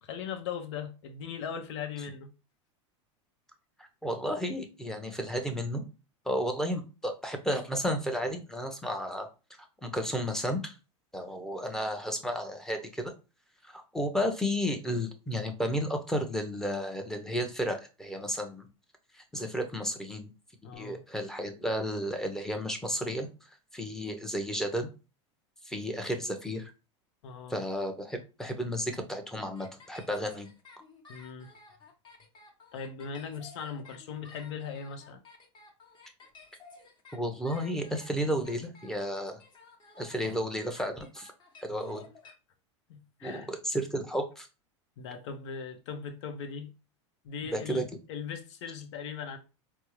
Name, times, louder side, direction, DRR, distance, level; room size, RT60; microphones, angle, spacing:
voice 1, 0.0-2.3 20.6-21.0 27.2-27.6 31.1-31.5 32.7-35.2 40.2-40.4 41.7-42.3 42.9-43.5 45.0-46.7 47.2-47.8 48.1-49.4, left 6 dB, 65° left, 0.7 m, -39 dB
voice 2, 4.0-5.8 6.3-9.3 9.8-10.8 11.1-13.1 13.6-18.7 19.1-20.3 20.7-23.3 23.7-24.9 25.6-26.7 27.5-30.5 37.1-39.4 40.0-41.3 41.6-42.0 43.2-44.5 47.5-47.8, equal, 5° left, 0.7 m, -32 dB
sound 1, 29.5-42.3, left 4 dB, 30° left, 1.0 m, -54 dB
4.4 x 2.0 x 3.0 m
hypercardioid pair, 100°, 16 cm